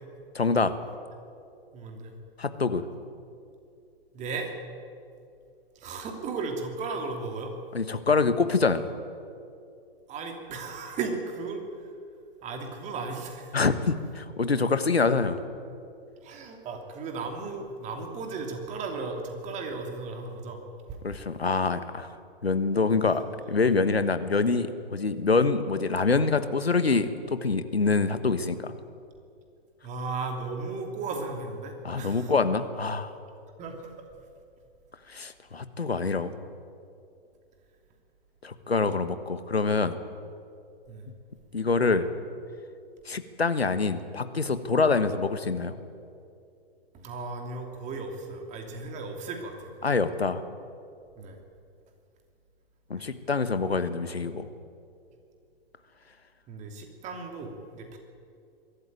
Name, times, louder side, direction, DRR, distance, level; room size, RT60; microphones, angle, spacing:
voice 1, 0.3-0.7 2.4-2.8 7.7-8.9 13.5-15.4 21.0-22.2 22.4-28.8 31.8-33.1 35.1-36.3 38.4-40.0 41.5-42.1 43.0-45.7 49.8-50.4 52.9-54.5, left 4 dB, 80° left, 11 dB, 1.4 m, -25 dB
voice 2, 1.7-2.2 4.1-4.5 5.7-7.6 10.1-11.9 12.4-13.6 16.2-20.6 20.9-21.0 29.8-32.3 33.6-33.9 40.9-41.1 46.9-49.7 51.2-51.4 53.0-53.1 56.5-58.0, right 4 dB, 25° right, 3 dB, 2.9 m, -35 dB
22.5 x 13.5 x 9.4 m, 2.5 s
figure-of-eight pair, 115°, 31 cm